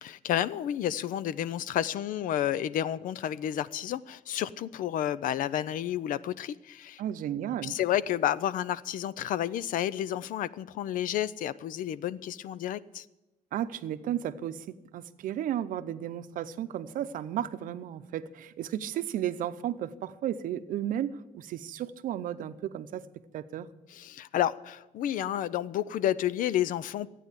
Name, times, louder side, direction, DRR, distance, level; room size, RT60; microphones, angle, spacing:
voice 1, 0.0-7.0 7.6-13.0 23.9-27.1, left 11 dB, 75° left, 18 dB, 0.5 m, -30 dB
voice 2, 7.0-7.8 13.5-23.1 23.3-23.7, right 11 dB, 80° right, 12 dB, 0.7 m, -34 dB
14.0 x 9.1 x 8.2 m, 1.0 s
cardioid pair, 165°, 14 cm